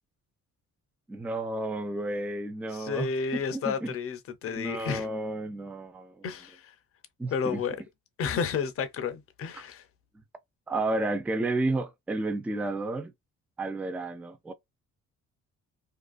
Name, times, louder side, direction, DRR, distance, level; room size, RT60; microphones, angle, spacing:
voice 1, 1.1-3.9 4.5-6.3 7.2-7.6 9.5-9.6 10.7-13.1 13.6-14.5, right 2 dB, 5° right, 0.4 m, -32 dB
voice 2, 2.7-5.1 6.2-6.6 7.3-7.8 8.2-9.8, left 6 dB, 50° left, 0.6 m, -31 dB
2.5 x 2.3 x 2.3 m
cardioid pair, 90°, 30 cm